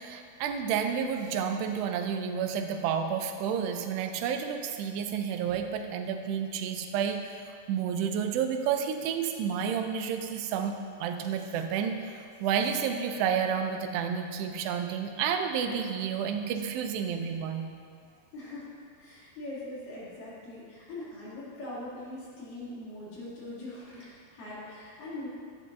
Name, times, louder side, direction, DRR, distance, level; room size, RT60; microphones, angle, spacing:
voice 1, 0.0-7.4 7.7-17.7, right 7 dB, 85° right, 5 dB, 2.9 m, -30 dB
voice 2, 18.3-25.3, left 1 dB, 55° left, -9 dB, 4.4 m, -42 dB
16.0 x 12.0 x 2.7 m, 2.2 s
omnidirectional pair, 4.8 m